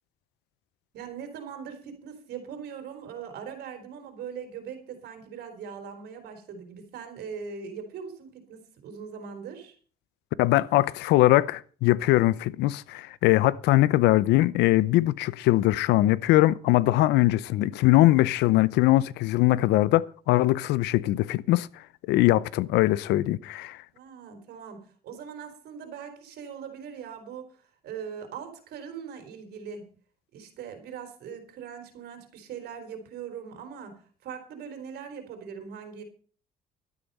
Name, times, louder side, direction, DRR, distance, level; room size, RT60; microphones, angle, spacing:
voice 1, 0.9-9.8 23.9-29.9 30.3-36.0, right 7 dB, 70° right, 3.9 m, -41 dB
voice 2, 10.4-21.7 22.1-23.8, left 16 dB, 85° left, 0.7 m, -21 dB
12.5 x 10.0 x 5.4 m
cardioid pair, 110°, 17 cm